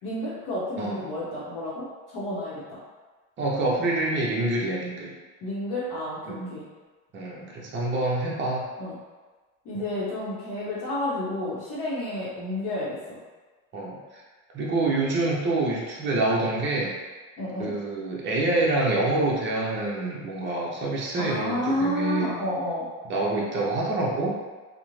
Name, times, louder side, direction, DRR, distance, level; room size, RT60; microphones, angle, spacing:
voice 1, 0.0-2.8 5.4-6.7 8.8-9.0 9.6-13.2 17.4-17.8 21.2-22.9, left 1 dB, 50° left, -8 dB, 0.8 m, -30 dB
voice 2, 3.4-5.1 6.3-6.5 7.1-8.7 9.8-9.9 13.7-14.0 14.5-17.0 17.6-22.3 23.1-24.3, right 2 dB, 30° right, -4 dB, 0.6 m, -26 dB
2.4 x 2.1 x 3.0 m, 1.3 s
supercardioid pair, 120°, 39 cm